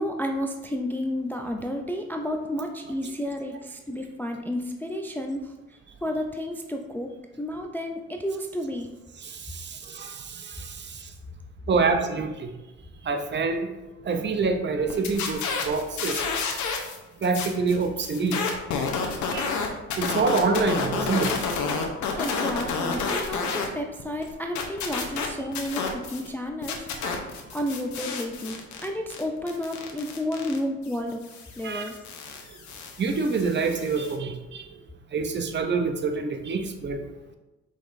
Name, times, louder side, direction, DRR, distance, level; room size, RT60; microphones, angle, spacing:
voice 1, 0.0-5.5 6.0-7.1 7.4-8.9 22.2-26.8 27.5-31.2 31.6-32.0, left 1 dB, 5° left, 3 dB, 0.3 m, -31 dB
voice 2, 9.2-10.7 11.7-12.5 13.1-13.7 14.0-16.2 17.2-18.4 19.3-19.5 20.0-21.3 27.0-27.1 31.6-31.9 33.0-34.6 35.1-37.0, right 4 dB, 35° right, 6 dB, 0.6 m, -26 dB
sound 1, 14.9-17.0 17.2-23.7 24.0-26.3 26.6-34.1, left 5 dB, 75° left, 0.8 m, -30 dB
4.9 x 4.0 x 2.5 m, 1.0 s
cardioid pair, 90°, 30 cm